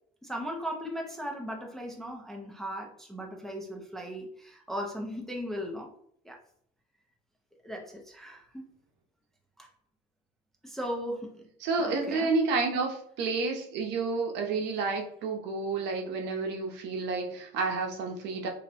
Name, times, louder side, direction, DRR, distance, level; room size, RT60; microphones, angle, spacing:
voice 1, 0.2-5.9 6.2-6.4 7.6-8.7 9.6-9.7 10.6-11.5 11.8-12.3, equal, ahead, 0 dB, 0.4 m, -37 dB
voice 2, 11.6-18.5, right 4 dB, 60° right, 2 dB, 0.8 m, -30 dB
2.7 x 2.1 x 4.0 m, 0.66 s
cardioid pair, 130°, 20 cm